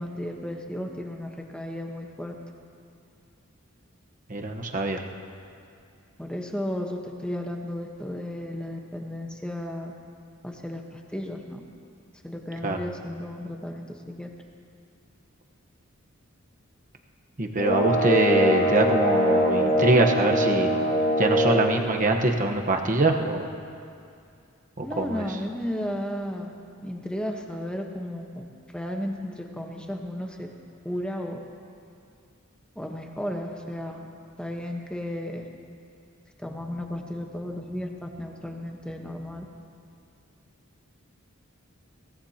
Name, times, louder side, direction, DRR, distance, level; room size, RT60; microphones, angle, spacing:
voice 1, 0.0-2.3 6.2-9.9 10.4-11.6 12.2-14.3 24.8-26.5 26.8-28.4 28.7-30.5 30.8-31.4 32.8-34.1 34.4-35.5 36.4-39.5, left 1 dB, 5° left, 2 dB, 1.1 m, -34 dB
voice 2, 4.3-5.0 12.6-12.8 17.4-20.7 21.2-23.5 24.8-25.2, right 2 dB, 40° right, 2 dB, 1.1 m, -23 dB
sound 1, 17.6-21.8, equal, 45° left, 2.2 m, -22 dB
22.5 x 18.5 x 2.9 m, 2.5 s
head